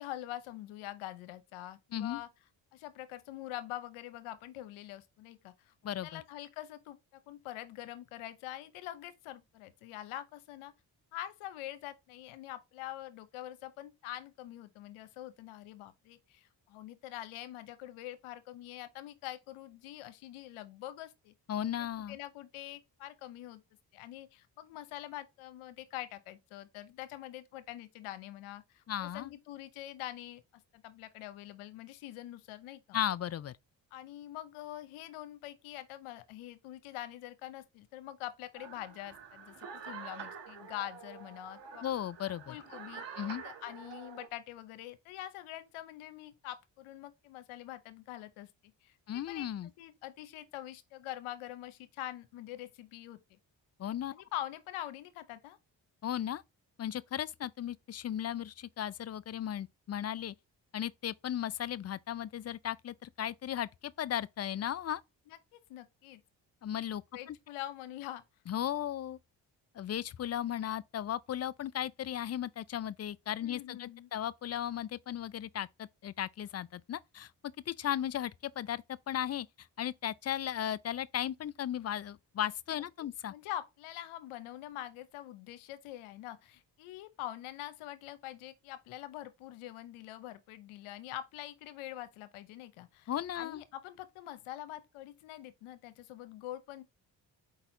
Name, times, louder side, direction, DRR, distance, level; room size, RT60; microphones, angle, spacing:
voice 1, 0.0-2.3 2.7-10.7 11.1-21.3 21.8-23.6 23.9-30.4 30.7-33.0 33.9-41.8 42.5-43.1 43.4-53.4 54.1-55.6 65.3-66.2 67.1-68.2 73.4-74.1 82.7-82.8 83.3-96.8, left 13 dB, 85° left, 0.7 m, -45 dB
voice 2, 5.8-6.2 21.5-22.2 28.9-29.3 32.9-33.5 41.8-42.6 43.2-43.4 49.1-49.7 53.8-54.1 56.0-56.4 56.8-60.3 60.7-65.0 66.6-67.0 67.3-67.4 68.5-69.2 69.7-77.3 77.7-83.3 93.1-93.6, left 11 dB, 35° left, 0.4 m, -36 dB
sound 1, 38.5-44.3, right 6 dB, 60° right, 1.3 m, -47 dB
4.5 x 4.1 x 2.5 m
hypercardioid pair, 45°, 48 cm